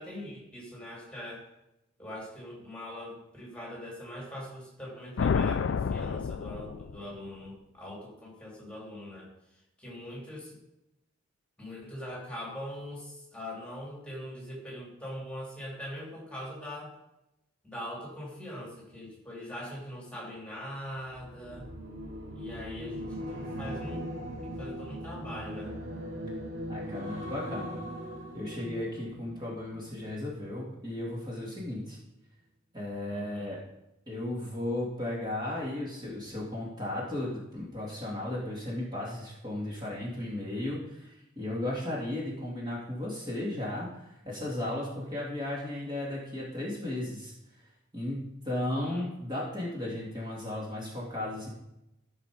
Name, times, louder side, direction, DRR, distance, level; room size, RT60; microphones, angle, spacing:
voice 1, 0.0-1.5 2.0-9.3 9.8-10.6 11.6-16.9 17.6-21.7 22.3-24.1 24.4-25.7 33.1-33.6 48.8-49.1, left 1 dB, 5° left, -4 dB, 3.2 m, -42 dB
sound 1, 5.2-7.3, left 6 dB, 60° left, 0.4 m, -29 dB
sound 2, 21.1-30.4 30.7-31.1, equal, 65° right, 2.5 m, -40 dB
voice 2, 26.7-27.8 28.3-32.0 32.7-33.6 34.1-47.3 47.9-51.5, left 1 dB, 20° right, -5 dB, 2.5 m, -35 dB
14.5 x 6.4 x 5.0 m, 0.88 s
head